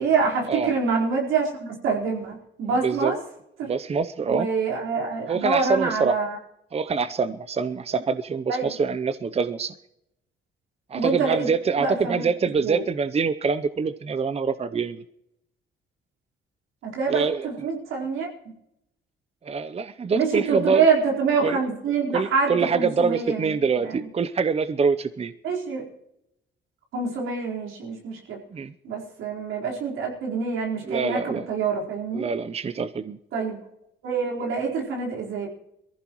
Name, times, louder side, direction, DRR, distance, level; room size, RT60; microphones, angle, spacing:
voice 1, 0.0-3.2 3.6-3.7 4.3-6.4 8.5-8.7 10.9-11.5 11.8-12.3 12.6-12.8 16.8-18.3 20.1-23.6 23.8-24.0 25.4-25.8 26.9-28.4 28.8-32.3 33.3-33.6 34.0-35.5, right 5 dB, 90° right, -2 dB, 4.3 m, -26 dB
voice 2, 2.7-3.1 3.6-4.5 5.3-6.2 6.7-9.7 10.9-15.0 17.1-17.7 19.4-20.9 21.4-21.6 22.1-25.3 28.5-28.7 30.8-31.5 32.1-33.2, right 5 dB, 30° right, 13 dB, 0.7 m, -25 dB
22.5 x 15.0 x 3.1 m, 0.81 s
cardioid pair, 90°, 20 cm